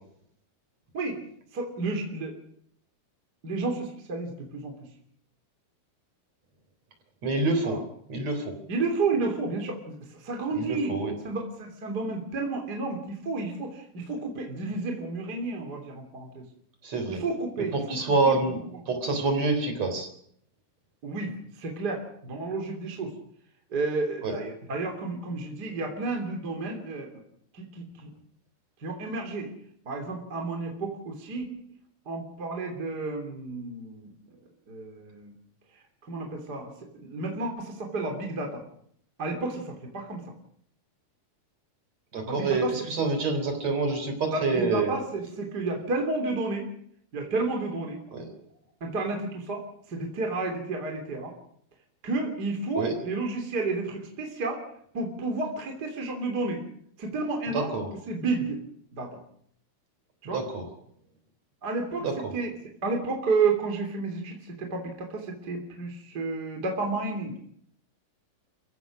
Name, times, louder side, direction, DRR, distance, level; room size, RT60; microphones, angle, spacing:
voice 1, 1.5-2.3 3.4-4.7 7.6-7.8 8.7-10.9 11.2-16.4 17.1-18.4 21.0-23.1 23.7-27.1 27.5-28.1 28.8-29.5 29.8-31.5 32.0-34.1 34.7-35.3 36.1-38.6 39.2-40.2 42.3-42.7 44.3-46.7 47.1-48.0 48.8-51.3 52.0-54.6 54.9-56.6 57.0-57.7 58.1-58.6 58.9-59.2 60.2-60.4 61.6-62.5 62.8-67.4, right 3 dB, 25° right, 2 dB, 3.3 m, -31 dB
voice 2, 7.2-7.8 8.1-8.5 10.5-11.1 16.8-17.2 17.7-18.6 18.9-20.1 24.2-24.3 42.1-44.9 48.1-48.3 52.8-52.9 57.5-57.9 60.3-60.6 62.0-62.3, right 3 dB, 40° right, 5 dB, 4.6 m, -27 dB
29.5 x 16.0 x 6.2 m, 0.66 s
omnidirectional pair, 4.7 m